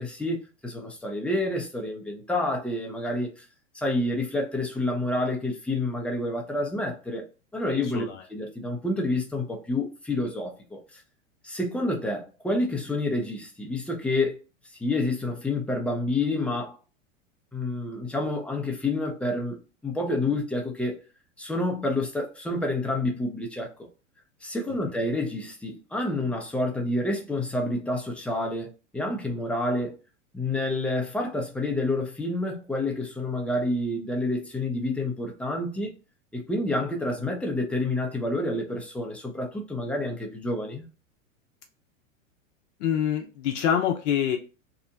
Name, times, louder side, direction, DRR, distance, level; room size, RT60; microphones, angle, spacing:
voice 1, 0.0-3.4 3.7-7.2 7.5-11.0 11.4-14.4 14.8-16.8 17.5-21.0 21.4-23.7 24.4-30.0 30.3-35.9 36.3-40.9, left 2 dB, 5° left, 0.5 m, -28 dB
voice 2, 42.8-44.4, left 9 dB, 60° left, 0.6 m, -25 dB
2.8 x 2.0 x 2.5 m
hypercardioid pair, 105°, 40 cm